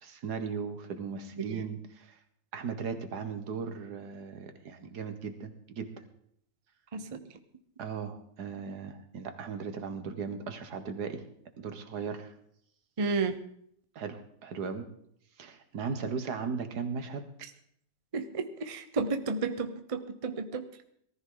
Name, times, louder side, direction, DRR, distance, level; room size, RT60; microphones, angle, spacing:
voice 1, 0.0-2.2 2.5-6.1 7.8-11.3 11.6-12.3 14.0-14.8 15.4-17.3, right 5 dB, 65° right, 7 dB, 1.8 m, -37 dB
voice 2, 6.9-7.2 13.0-13.3 18.1-20.6, right 4 dB, 35° right, 8 dB, 0.5 m, -32 dB
19.0 x 14.0 x 3.9 m, 0.69 s
omnidirectional pair, 1.9 m